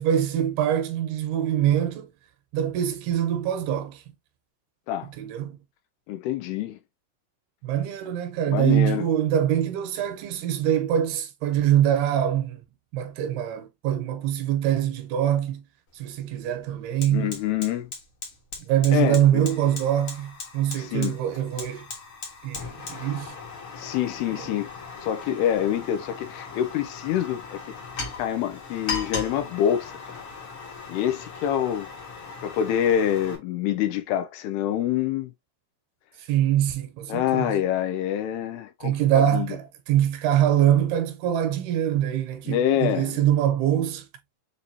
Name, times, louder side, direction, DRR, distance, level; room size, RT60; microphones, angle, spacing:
voice 1, 0.0-2.1 2.5-4.0 5.2-5.6 7.6-12.6 12.9-15.6 15.9-17.3 18.6-21.9 22.4-23.3 24.3-24.5 36.2-37.6 38.8-44.1, right 11 dB, 80° right, 2.5 m, -24 dB
voice 2, 6.1-6.8 8.5-9.0 17.1-17.9 18.9-19.5 20.8-21.2 23.7-24.7 25.0-27.6 28.2-30.2 30.9-31.9 32.4-35.3 37.1-39.5 42.5-43.2, left 10 dB, 85° left, 2.4 m, -26 dB
Fire, 15.9-16.0 16.3-33.4, left 4 dB, 60° left, 1.4 m, -38 dB
6.7 x 2.6 x 2.8 m
omnidirectional pair, 4.8 m